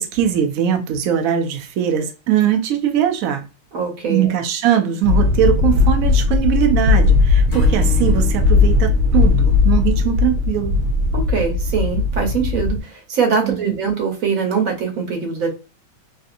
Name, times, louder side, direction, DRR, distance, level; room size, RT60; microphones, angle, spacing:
voice 1, 0.0-3.4 4.1-10.8 13.4-13.8, right 10 dB, 85° right, 0.7 m, -20 dB
voice 2, 3.7-4.3 11.1-15.5, right 6 dB, 55° right, 1.2 m, -22 dB
sound 1, 5.0-12.8, left 4 dB, 70° right, 1.2 m, -17 dB
Acoustic guitar / Strum, 7.5-10.8, left 1 dB, 65° left, 0.5 m, -36 dB
3.2 x 2.7 x 2.5 m
omnidirectional pair, 2.0 m